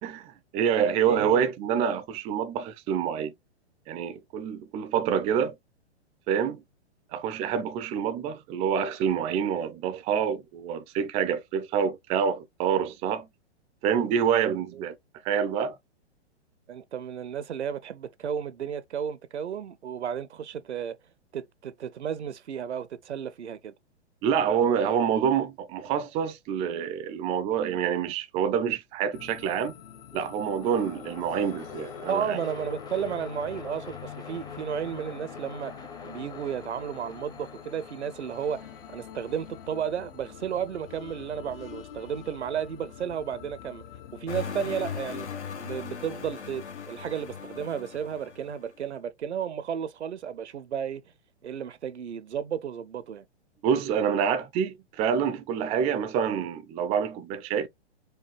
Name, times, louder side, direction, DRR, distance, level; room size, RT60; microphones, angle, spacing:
voice 1, 0.0-3.3 3.9-5.5 6.3-6.6 7.1-13.3 13.8-15.0 15.2-15.7 24.2-29.8 30.1-32.4 53.6-57.7, right 8 dB, 20° right, 0.4 m, -27 dB
voice 2, 1.1-1.4 14.7-14.9 16.7-21.0 21.3-23.7 32.1-35.8 36.0-43.8 44.1-45.3 45.6-51.0 51.4-53.3, right 8 dB, 80° right, 0.7 m, -33 dB
sound 1, 29.1-44.3, left 10 dB, 55° left, 0.9 m, -46 dB
sound 2, 30.1-42.2, left 5 dB, 10° left, 0.7 m, -45 dB
sound 3, 44.3-48.7, left 7 dB, 80° left, 1.0 m, -38 dB
4.7 x 2.3 x 2.9 m
hypercardioid pair, 120°, 34 cm